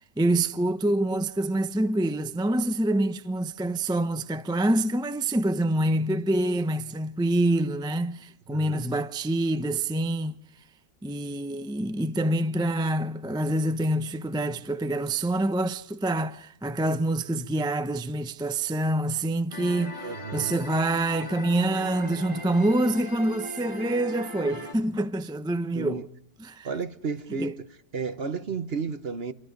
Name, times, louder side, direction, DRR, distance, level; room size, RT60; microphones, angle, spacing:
voice 1, 0.2-10.3 11.0-26.1 26.4-26.7 27.4-27.5, right 1 dB, 5° right, 0.4 m, -26 dB
voice 2, 8.5-8.9 20.0-20.6 25.7-26.0 26.6-27.5 27.9-29.3, right 5 dB, 40° right, 1.1 m, -32 dB
sound 1, 19.5-24.7, left 2 dB, 30° left, 3.4 m, -39 dB
27.5 x 25.0 x 5.3 m
omnidirectional pair, 1.9 m